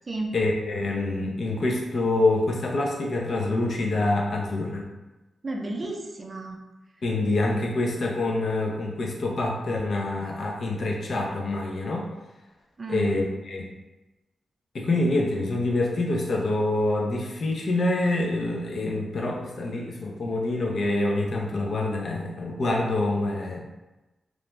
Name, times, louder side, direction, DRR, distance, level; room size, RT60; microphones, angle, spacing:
voice 1, 0.3-4.9 7.0-12.1 12.9-13.7 14.7-23.6, left 2 dB, 60° left, 0 dB, 0.5 m, -26 dB
voice 2, 5.4-6.6 12.8-13.1, right 2 dB, 40° right, 1 dB, 0.4 m, -32 dB
2.5 x 2.1 x 3.0 m, 1.1 s
cardioid pair, 80°, 0 cm